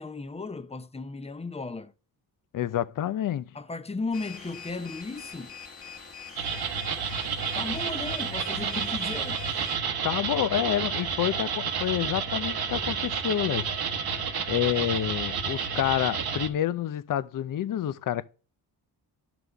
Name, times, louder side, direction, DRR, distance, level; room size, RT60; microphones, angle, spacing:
voice 1, 0.0-1.9 3.5-5.6 7.5-9.4, left 3 dB, 15° left, 0.6 m, -35 dB
voice 2, 2.5-3.5 10.0-13.7 14.1-18.3, left 11 dB, 55° left, 0.6 m, -28 dB
sound 1, 4.1-9.8, left 6 dB, 35° left, 1.8 m, -44 dB
sound 2, 6.4-16.5, right 6 dB, 65° right, 1.1 m, -30 dB
11.0 x 6.0 x 3.4 m
cardioid pair, 95°, 39 cm